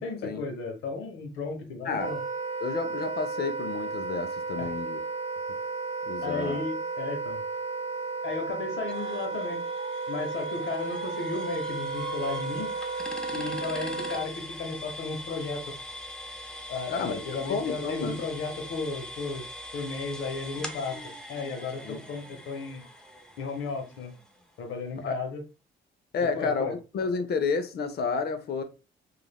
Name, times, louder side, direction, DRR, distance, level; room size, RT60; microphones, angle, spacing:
voice 1, 0.0-2.2 4.6-4.7 6.2-7.4 8.2-9.7 10.1-12.7 13.3-15.6 16.7-19.5 19.7-21.0 21.3-22.8 23.4-24.1 24.6-25.4 26.2-26.7, left 4 dB, 80° left, 0.9 m, -34 dB
Wind instrument woodwind instrument, 2.0-14.3, right 4 dB, 20° right, 1.2 m, -33 dB
voice 2, 2.6-5.0 6.1-6.6 16.9-18.2 21.8-22.0 25.0-25.2 26.1-28.6, left 4 dB, 55° left, 0.6 m, -30 dB
sound 1, 8.9-24.6, left 1 dB, 5° left, 0.5 m, -42 dB
3.2 x 2.4 x 2.2 m
cardioid pair, 90°, 20 cm